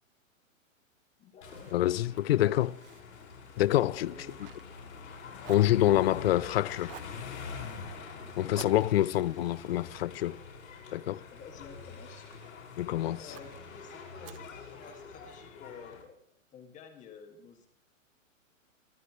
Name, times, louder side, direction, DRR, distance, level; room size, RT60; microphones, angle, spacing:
voice 1, 1.2-1.9 2.3-2.6 3.9-4.5 8.2-8.8 9.3-9.4 11.3-12.2 12.9-16.2 16.5-17.7, left 5 dB, 20° left, 2.3 m, -51 dB
sound 1, 1.4-16.0, left 5 dB, 75° left, 6.0 m, -45 dB
Fire, 1.4-5.1 5.4-6.4 6.8-7.2 8.5-11.0 11.5-12.6 13.3-13.6 14.2-15.3, right 12 dB, 45° right, 0.9 m, -53 dB
voice 2, 1.7-2.7 3.6-4.1 5.5-6.9 8.4-10.4 10.9-11.2 12.8-13.2, left 14 dB, 50° left, 0.5 m, -26 dB
23.5 x 15.0 x 3.3 m
hypercardioid pair, 155°, 40 cm